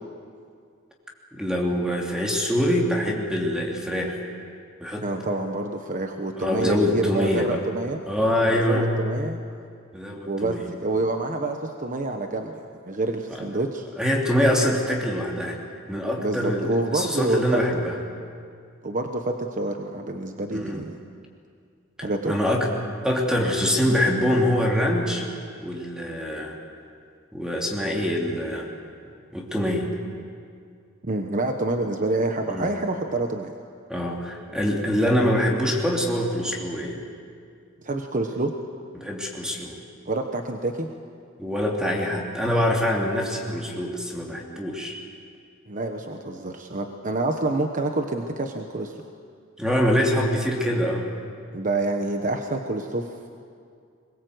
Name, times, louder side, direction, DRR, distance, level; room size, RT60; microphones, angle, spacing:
voice 1, 1.3-4.2 4.8-5.1 6.4-7.6 8.1-8.9 9.9-10.7 13.4-13.5 14.0-15.6 15.9-18.0 20.5-20.9 22.0-22.7 23.0-25.3 25.6-26.6 27.3-28.7 29.3-29.9 32.5-32.7 33.9-37.0 38.9-39.8 41.4-44.9 49.6-51.1, equal, 5° right, -1 dB, 2.9 m, -24 dB
voice 2, 5.0-8.0 8.5-9.4 10.2-13.9 16.2-17.4 18.8-21.0 22.0-22.4 31.0-33.5 37.8-38.5 40.1-40.9 45.7-48.9 51.5-53.1, right 2 dB, 40° right, 4 dB, 1.2 m, -27 dB
23.0 x 22.0 x 8.0 m, 2.2 s
head